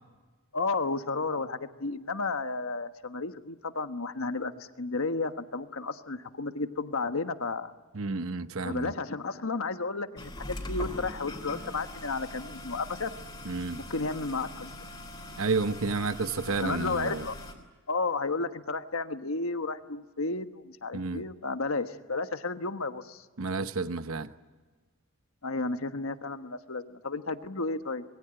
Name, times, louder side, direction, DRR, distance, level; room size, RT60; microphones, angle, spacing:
voice 1, 0.5-7.7 8.6-13.1 13.8-14.7 16.6-17.4 17.9-23.2 25.4-28.0, left 3 dB, 75° left, 1.3 m, -32 dB
voice 2, 7.9-8.9 13.4-13.8 15.4-17.2 20.9-21.2 23.4-24.3, right 3 dB, 75° right, 0.9 m, -31 dB
sound 1, 10.2-17.5, left 1 dB, 20° left, 3.8 m, -42 dB
25.5 x 22.0 x 9.0 m
head